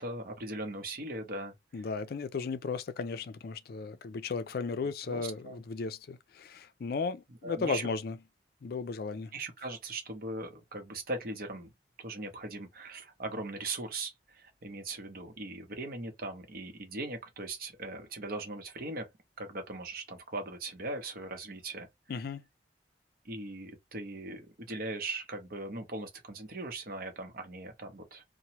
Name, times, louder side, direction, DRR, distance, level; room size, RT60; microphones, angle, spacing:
voice 1, 0.0-1.8 5.1-5.6 7.4-7.9 9.3-11.7 12.0-19.1 19.4-21.9 23.2-28.2, right 2 dB, 55° right, 0.8 m, -39 dB
voice 2, 1.7-8.2 8.6-9.3 22.1-22.4, left 4 dB, 55° left, 0.4 m, -35 dB
2.9 x 2.1 x 2.8 m
head